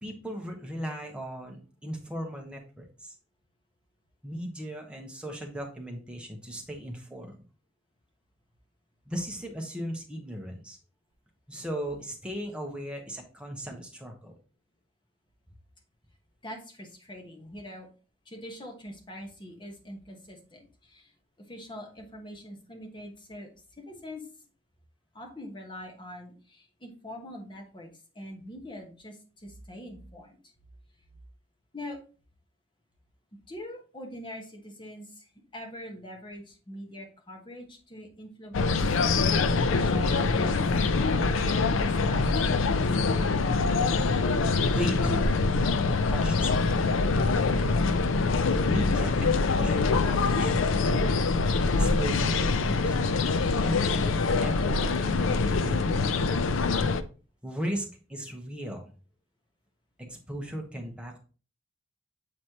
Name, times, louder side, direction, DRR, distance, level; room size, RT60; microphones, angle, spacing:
voice 1, 0.0-3.1 4.2-7.4 9.1-10.8 11.5-14.3 44.6-45.4 46.1-46.8 48.7-50.9 51.6-53.0 53.6-56.2 57.4-58.9 60.0-61.2, equal, 5° right, 1 dB, 1.0 m, -37 dB
voice 2, 16.4-17.9 18.2-21.1 21.5-23.5 23.8-24.3 25.1-30.4 31.7-32.0 33.5-39.0 39.5-40.9 41.2-43.2, left 1 dB, 25° left, 2 dB, 1.2 m, -43 dB
sound 1, 38.5-57.0, left 4 dB, 65° left, 0.4 m, -24 dB
7.7 x 4.1 x 2.9 m, 0.36 s
head